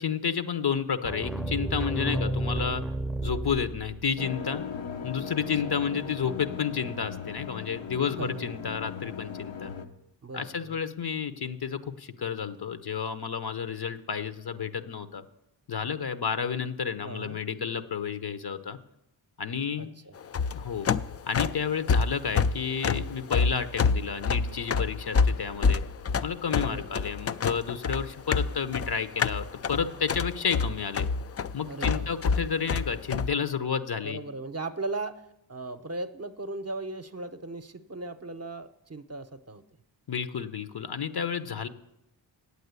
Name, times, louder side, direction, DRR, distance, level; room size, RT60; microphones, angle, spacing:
voice 1, 0.0-2.8 3.2-4.6 5.0-9.7 10.3-15.2 15.7-18.8 19.4-19.9 20.5-20.9 21.3-25.8 26.2-31.1 31.5-34.2 40.1-41.7, left 6 dB, 55° left, 11 dB, 0.9 m, -31 dB
sound 1, 1.0-4.2, right 1 dB, ahead, 0.7 m, -31 dB
voice 2, 2.0-2.4 5.3-5.8 8.2-8.6 10.2-10.8 17.0-17.4 19.8-20.1 26.6-26.8 31.7-32.1 34.0-39.6, right 2 dB, 35° right, 10 dB, 0.7 m, -38 dB
sound 2, 4.2-9.9, left 6 dB, 75° left, 1.1 m, -38 dB
sound 3, 20.2-33.3, left 5 dB, 35° left, 0.4 m, -27 dB
8.7 x 8.3 x 8.2 m, 0.85 s
cardioid pair, 50°, 47 cm